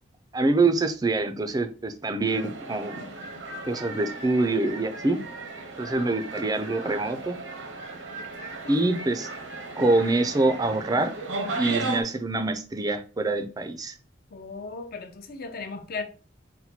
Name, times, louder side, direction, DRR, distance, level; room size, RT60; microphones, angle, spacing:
voice 1, 0.3-2.9 3.7-5.2 5.8-7.4 8.7-9.3 9.8-11.1 11.6-14.0, right 2 dB, 20° right, 0.4 m, -25 dB
sound 1, 2.3-12.0, right 3 dB, 85° right, 0.8 m, -36 dB
voice 2, 8.4-8.8 14.3-16.0, left 4 dB, 50° left, 0.6 m, -37 dB
4.2 x 2.2 x 4.2 m
head